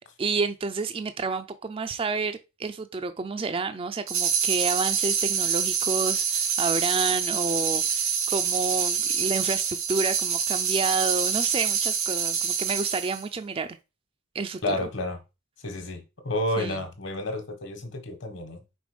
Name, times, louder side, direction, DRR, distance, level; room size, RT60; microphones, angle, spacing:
voice 1, 0.0-13.8 14.3-14.7 16.6-16.8, right 4 dB, 25° right, 0.4 m, -30 dB
sound 1, 4.1-13.2, right 7 dB, 90° right, 2.4 m, -26 dB
voice 2, 14.6-15.2 15.6-18.6, left 1 dB, 60° left, 1.4 m, -30 dB
5.2 x 3.9 x 5.0 m
head